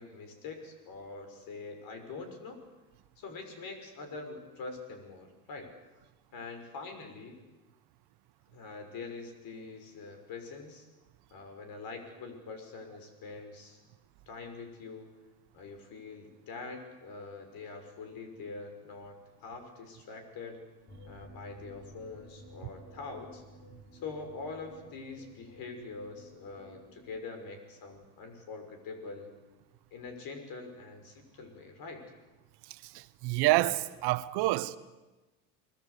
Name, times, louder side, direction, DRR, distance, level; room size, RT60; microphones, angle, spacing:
voice 1, 0.0-2.6 3.2-5.7 6.3-7.4 8.5-10.9 11.3-13.8 14.3-15.1 15.5-20.6 21.0-23.4 23.9-29.3 29.9-32.1, left 4 dB, 50° left, 6.1 m, -44 dB
sound 1, 20.9-27.2, equal, 25° left, 6.0 m, -53 dB
voice 2, 32.7-34.8, right 17 dB, 60° right, 1.3 m, -28 dB
29.0 x 21.0 x 8.4 m
supercardioid pair, 115°, 45 cm